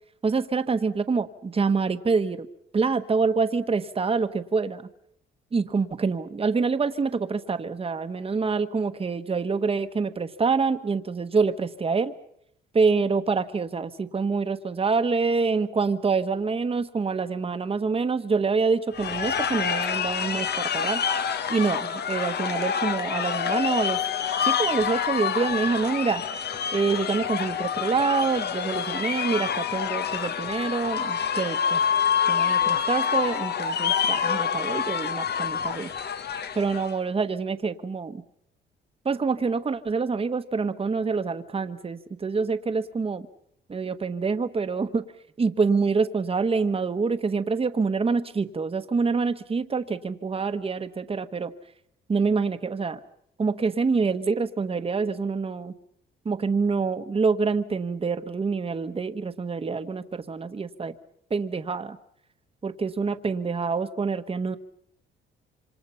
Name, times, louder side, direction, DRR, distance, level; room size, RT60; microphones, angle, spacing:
voice 1, 0.2-2.5 2.7-4.8 5.5-12.1 12.7-21.0 21.5-24.0 24.4-26.2 26.7-31.8 32.3-35.9 36.5-38.2 39.0-43.3 43.7-45.0 45.4-51.5 52.1-53.0 53.4-55.7 56.2-60.9 61.3-62.0 62.6-64.6, right 4 dB, 30° right, 9 dB, 1.3 m, -26 dB
sound 1, 18.9-37.0, left 7 dB, 55° left, 1.3 m, -27 dB
27.0 x 25.5 x 5.7 m, 0.73 s
cardioid pair, 90°, 20 cm